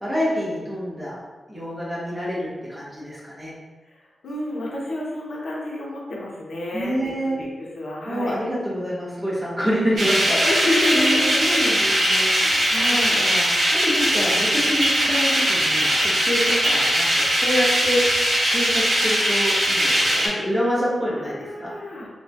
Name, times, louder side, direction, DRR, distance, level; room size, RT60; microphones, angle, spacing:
voice 1, 0.0-1.2 1.5-3.5 6.7-7.4 8.1-10.4 10.6-12.6 12.9-13.5 13.8-15.9 16.2-18.1 18.5-21.7, equal, 10° right, -8 dB, 0.8 m, -27 dB
voice 2, 3.8-8.4 10.4-11.6 12.1-13.2 14.9-15.1 21.1-22.1, left 1 dB, 65° left, -4 dB, 0.6 m, -30 dB
sound 1, 10.0-20.3, equal, 70° right, 0.9 m, -20 dB
2.8 x 2.2 x 2.7 m, 1.2 s
wide cardioid pair, 175°, 0 cm